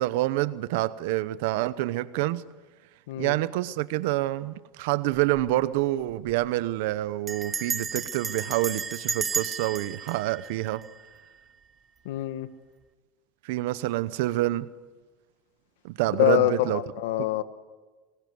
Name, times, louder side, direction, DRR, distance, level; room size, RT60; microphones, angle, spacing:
voice 1, 0.0-2.4 3.2-10.8 13.4-14.7 15.8-16.8, right 16 dB, 75° right, 0.8 m, -27 dB
Bell, 5.1-5.5 5.8-5.9 6.1-6.5 7.3-11.4, right 5 dB, 20° right, 1.0 m, -33 dB
voice 2, 12.0-12.5 16.2-17.4, left 14 dB, 90° left, 1.3 m, -25 dB
24.5 x 21.5 x 9.6 m
supercardioid pair, 135°, 0 cm